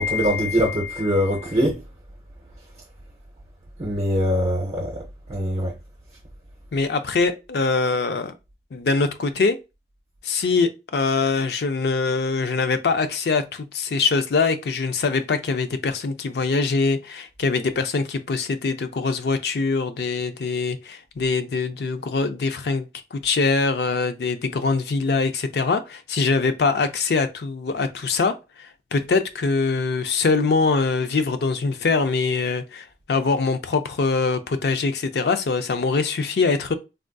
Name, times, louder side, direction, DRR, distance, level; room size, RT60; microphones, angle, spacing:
voice 1, 0.0-1.7 3.8-4.9 5.3-5.7, equal, 40° right, 0.6 m, -22 dB
voice 2, 6.7-8.3 8.7-9.6 10.2-36.7, left 4 dB, 70° left, 0.4 m, -23 dB
3.5 x 2.5 x 2.2 m
head